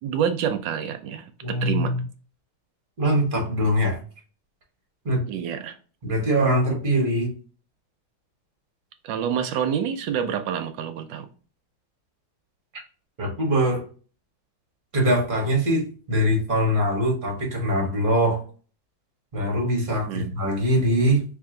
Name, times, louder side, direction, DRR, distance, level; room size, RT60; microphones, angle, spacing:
voice 1, 0.0-1.9 5.3-5.8 9.0-11.3 20.1-20.3, right 8 dB, 75° right, 1.1 m, -27 dB
voice 2, 1.4-2.0 3.0-4.0 5.0-5.3 6.0-7.3 13.2-13.9 14.9-18.4 19.3-21.2, equal, 35° right, 1.0 m, -22 dB
3.4 x 2.8 x 3.6 m
omnidirectional pair, 2.2 m